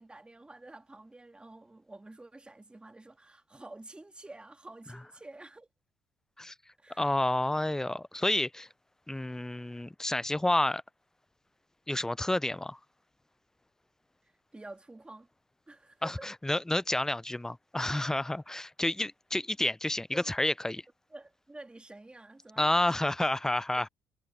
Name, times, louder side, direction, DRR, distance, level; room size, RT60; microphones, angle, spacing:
voice 1, 0.0-5.7 6.8-7.1 14.2-15.3 15.7-16.3 20.1-20.3 21.1-22.9, right 2 dB, 15° right, 2.9 m, -49 dB
voice 2, 7.0-8.7 9.1-10.8 11.9-12.8 16.0-20.8 22.6-23.9, left 1 dB, 5° left, 0.5 m, -30 dB
supercardioid pair, 70°, 7 cm